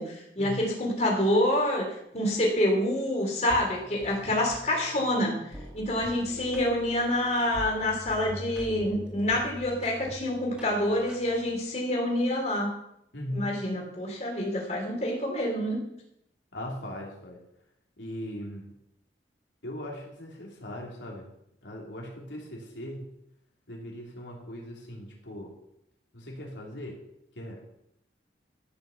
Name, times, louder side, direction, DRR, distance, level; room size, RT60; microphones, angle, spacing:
voice 1, 0.0-5.4 5.7-12.7 13.3-15.8, left 1 dB, 40° left, -1 dB, 3.7 m, -27 dB
sound 1, 3.5-11.6, equal, 5° right, 3.1 m, -44 dB
voice 2, 13.1-13.6 16.5-17.4 18.0-18.7 19.6-21.3 21.6-23.1 23.7-25.6 26.1-27.0 27.4-27.6, left 1 dB, 85° left, -1 dB, 3.3 m, -39 dB
13.5 x 6.7 x 7.2 m, 0.77 s
head